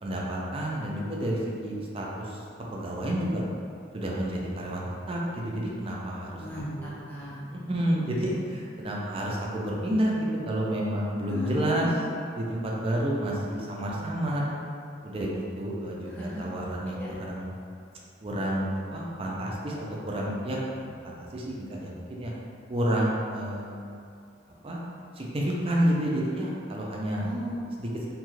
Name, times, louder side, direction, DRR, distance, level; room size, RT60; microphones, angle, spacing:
voice 1, 0.0-2.4 2.7-3.4 3.9-6.9 7.7-11.9 12.3-14.5 15.0-17.5 18.2-22.3 22.7-23.8 24.6-24.8 25.1-27.3 27.8-28.1, right 1 dB, 30° right, -3 dB, 0.4 m, -30 dB
voice 2, 6.4-7.4 11.3-11.9 16.1-16.6 16.9-17.1 27.1-27.7, equal, 10° left, -9 dB, 0.7 m, -36 dB
2.9 x 2.3 x 3.1 m, 2.4 s
head